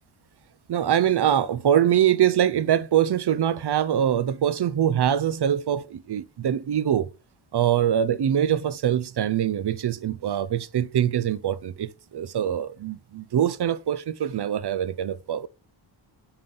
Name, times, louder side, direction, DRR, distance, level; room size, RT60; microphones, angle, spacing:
voice 1, 0.7-7.1 7.5-15.5, right 10 dB, 55° right, 0.5 m, -23 dB
6.8 x 5.7 x 3.8 m
wide cardioid pair, 115°, 49 cm